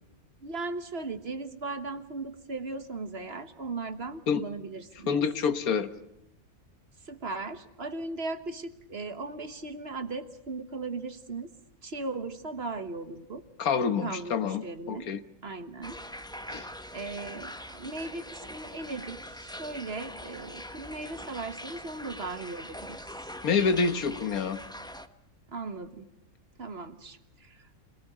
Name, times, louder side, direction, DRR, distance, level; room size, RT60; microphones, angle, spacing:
voice 1, 0.4-5.2 7.0-11.5 11.8-13.4 14.0-15.1 15.4-16.0 16.5-23.3 25.5-26.1 26.6-27.8, right 3 dB, 45° right, 10 dB, 1.5 m, -38 dB
voice 2, 5.1-5.9 13.6-14.6 14.9-15.2 16.5-16.7 23.4-24.6, left 5 dB, 80° left, 11 dB, 1.6 m, -27 dB
sound 1, 15.8-25.1, equal, 5° left, 0.8 m, -43 dB
26.0 x 18.0 x 10.0 m, 0.83 s
omnidirectional pair, 1.5 m